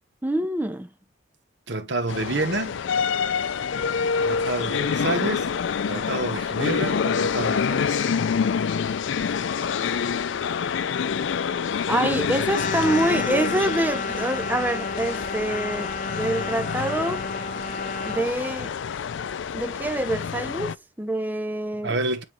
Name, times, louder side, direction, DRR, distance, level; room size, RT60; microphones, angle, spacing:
voice 1, 0.2-0.9 11.9-17.2 18.1-18.7 19.5-22.0, right 1 dB, 10° right, 0.5 m, -26 dB
voice 2, 1.7-2.8 4.2-5.5 5.9-8.1 21.8-22.2, right 2 dB, 60° right, 1.0 m, -28 dB
sound 1, 2.1-20.8, left 6 dB, 70° left, 0.4 m, -27 dB
sound 2, 12.5-18.3, left 3 dB, 40° left, 0.9 m, -32 dB
8.9 x 3.9 x 3.0 m
head